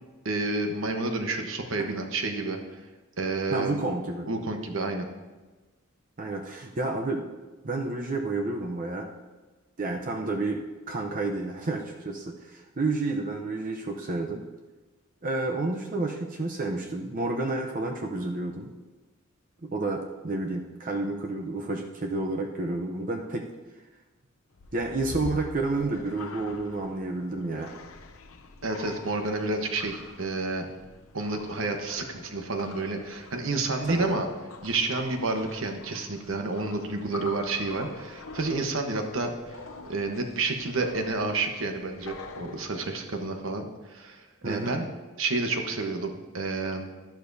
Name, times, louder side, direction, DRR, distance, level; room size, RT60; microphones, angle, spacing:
voice 1, 0.2-2.6 3.2-3.8 4.3-5.1 28.6-30.7 31.1-34.3 34.6-39.6 39.9-44.9 45.2-46.9, right 3 dB, 70° right, 4 dB, 1.1 m, -30 dB
voice 2, 3.5-4.3 6.2-7.2 7.6-9.1 9.8-10.6 10.9-14.4 15.2-18.7 19.6-23.4 24.7-27.7 33.8-34.1 44.4-44.7, right 2 dB, 40° right, 2 dB, 0.7 m, -30 dB
sound 1, 24.5-43.3, left 3 dB, 75° left, 0.7 m, -45 dB
12.0 x 11.5 x 2.7 m, 1.2 s
head